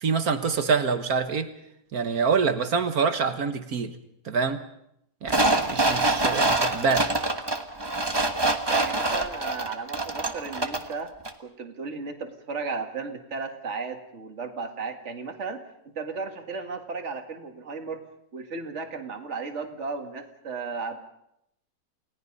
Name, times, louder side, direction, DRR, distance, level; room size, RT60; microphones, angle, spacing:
voice 1, 0.0-1.5 1.9-4.0 4.2-4.6 5.2-7.1, right 5 dB, 60° right, 9 dB, 1.7 m, -26 dB
sound 1, 5.3-10.9 11.3-11.4, right 2 dB, 15° right, 1.2 m, -25 dB
voice 2, 8.7-11.1 11.4-15.6 16.0-18.0 18.3-21.0, right 4 dB, 45° right, 4 dB, 2.2 m, -34 dB
29.5 x 18.0 x 5.4 m, 0.76 s
omnidirectional pair, 1.8 m